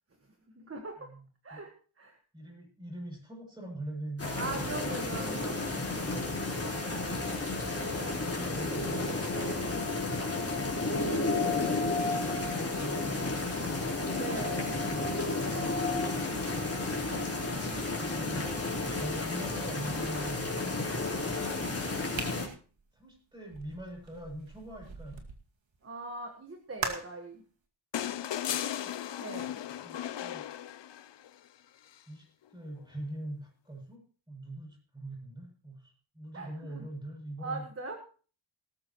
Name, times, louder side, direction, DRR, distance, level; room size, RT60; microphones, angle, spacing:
voice 1, 0.2-1.1 1.4-2.2 4.3-6.2 6.6-7.3 9.3-9.7 14.1-16.0 25.8-27.4 29.2-29.6 36.3-36.9 37.4-37.9, right 3 dB, 30° right, 4 dB, 1.6 m, -42 dB
voice 2, 2.3-4.8 8.1-9.2 12.8-13.3 17.7-20.8 21.1-22.3 22.9-25.2 28.5-28.9 29.8-30.4 32.1-32.2 32.5-37.6, right 1 dB, 10° right, 0 dB, 7.3 m, -43 dB
sound 1, 4.2-22.5, left 2 dB, 30° left, 4.0 m, -32 dB
sound 2, 22.1-25.4 26.8-27.3, right 4 dB, 70° right, 2.4 m, -40 dB
sound 3, 27.9-31.3 32.8-32.9, left 11 dB, 65° left, 0.7 m, -36 dB
19.0 x 13.5 x 3.1 m, 0.39 s
wide cardioid pair, 160°, 47 cm